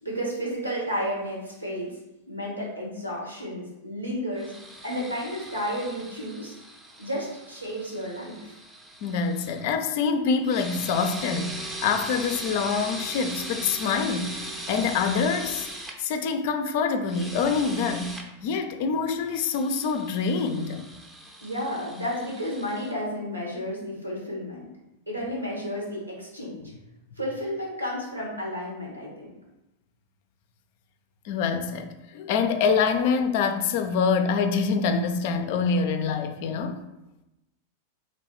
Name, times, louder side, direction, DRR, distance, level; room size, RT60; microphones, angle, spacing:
voice 1, 0.0-2.0 2.3-4.5 4.8-6.6 7.0-8.6 21.4-24.7 25.1-26.7 27.2-29.3, equal, 85° right, -3 dB, 1.3 m, -32 dB
sound 1, 4.4-9.6 10.4-16.0 17.0-18.3 19.3-23.0, right 1 dB, 10° right, 0.6 m, -39 dB
voice 2, 9.0-14.4 14.7-15.7 16.0-18.1 18.4-20.9 31.2-36.8, left 5 dB, 50° left, 7 dB, 0.4 m, -25 dB
3.1 x 3.1 x 4.2 m, 0.93 s
figure-of-eight pair, 90°, 0 cm